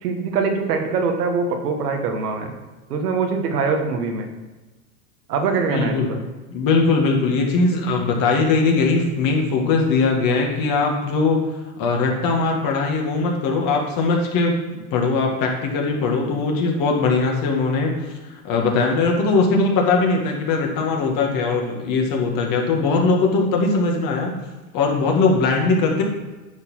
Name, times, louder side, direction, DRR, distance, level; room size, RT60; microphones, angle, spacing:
voice 1, 0.0-2.5 2.9-4.3 5.3-6.2, right 4 dB, 85° right, 4 dB, 1.5 m, -23 dB
voice 2, 5.7-6.1 6.5-11.4 11.8-14.6 14.9-17.9 18.2-24.3 24.7-26.0, left 3 dB, 45° left, 1 dB, 2.0 m, -20 dB
9.6 x 4.3 x 5.6 m, 1.2 s
supercardioid pair, 115°, 45 cm